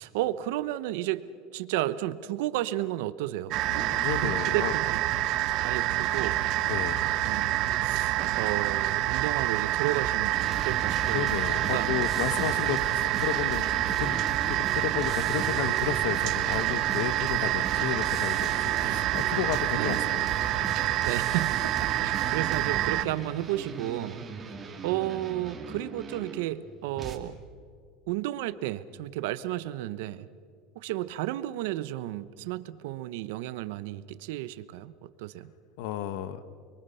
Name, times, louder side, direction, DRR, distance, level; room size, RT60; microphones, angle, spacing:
voice 1, 0.0-3.5 4.0-5.0 5.6-6.5 7.2-11.4 11.7-11.9 19.8-20.0 21.0-24.3 24.8-27.4 28.1-30.3 30.7-35.5, right 14 dB, 75° right, 14 dB, 0.9 m, -33 dB
sound 1, 3.5-23.0, right 14 dB, 45° right, 1.1 m, -27 dB
voice 2, 3.7-4.7 6.6-7.1 11.1-20.7 35.8-36.4, left 10 dB, 70° left, 13 dB, 1.2 m, -33 dB
sound 2, 10.3-27.2, right 5 dB, 20° right, 2.2 m, -38 dB
29.5 x 23.0 x 5.7 m, 2.2 s
supercardioid pair, 155°, 0 cm